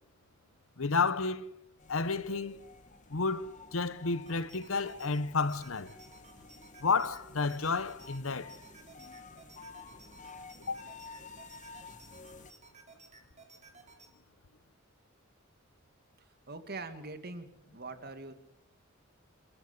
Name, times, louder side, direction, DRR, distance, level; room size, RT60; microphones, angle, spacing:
voice 1, 0.8-1.4 1.9-2.6 3.1-5.9 6.8-8.5 10.7-10.8, left 4 dB, 80° left, 1.0 m, -31 dB
sound 1, 1.8-12.5, left 4 dB, 40° left, 1.5 m, -52 dB
sound 2, 4.3-14.1, right 3 dB, 35° right, 4.1 m, -57 dB
voice 2, 16.2-18.3, right 3 dB, 50° right, 2.3 m, -43 dB
27.5 x 14.0 x 8.2 m
head